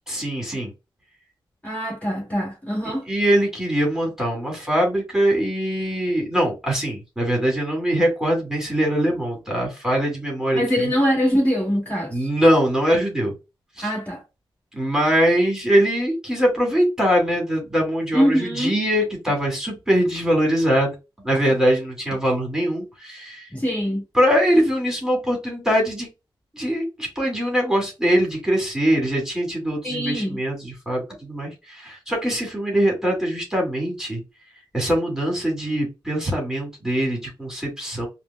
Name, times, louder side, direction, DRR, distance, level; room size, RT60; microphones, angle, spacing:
voice 1, 0.1-0.7 3.1-10.9 12.1-13.3 13.8-13.9 14.7-20.9 21.2-23.5 24.1-26.1 26.5-34.2 34.7-38.1, equal, 5° right, 2.1 m, -22 dB
voice 2, 1.6-3.1 10.5-12.2 13.8-14.2 18.1-18.7 23.5-24.0 29.8-30.4, equal, 15° left, 1.8 m, -23 dB
4.9 x 2.2 x 2.2 m
cardioid pair, 95°, 9 cm